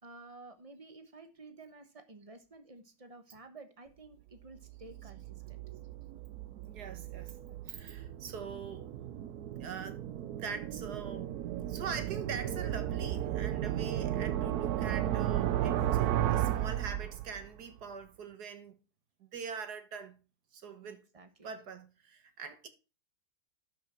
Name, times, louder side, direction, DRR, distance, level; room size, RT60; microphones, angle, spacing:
voice 1, 0.0-5.6 15.6-15.8 20.8-21.5, right 3 dB, 25° right, 0.9 m, -52 dB
sound 1, 4.6-17.6, right 12 dB, 75° right, 0.9 m, -34 dB
voice 2, 6.6-8.9 9.6-10.0 10.3-11.3 11.7-18.7 19.2-20.2 20.5-21.0 21.4-22.7, right 6 dB, 55° right, 1.7 m, -43 dB
12.0 x 5.7 x 4.3 m
omnidirectional pair, 2.2 m